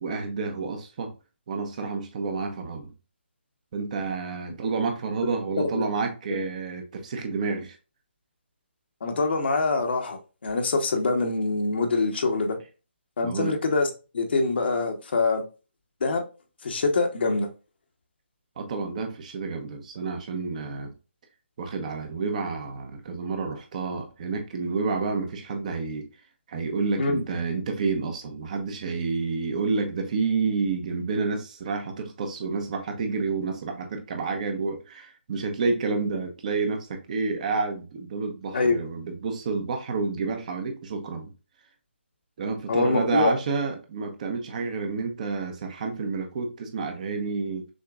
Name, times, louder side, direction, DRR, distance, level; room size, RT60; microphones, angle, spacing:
voice 1, 0.0-1.1 1.5-2.9 3.7-7.8 13.2-13.6 18.6-20.9 21.6-26.1 26.5-41.3 42.4-47.7, right 4 dB, 40° right, 1.0 m, -29 dB
voice 2, 9.0-12.6 13.2-13.9 14.1-15.4 16.0-16.2 16.6-17.5 27.0-27.2 38.5-38.8 42.7-43.3, left 3 dB, 60° left, 1.1 m, -24 dB
6.3 x 2.9 x 2.4 m
hypercardioid pair, 155°, 6 cm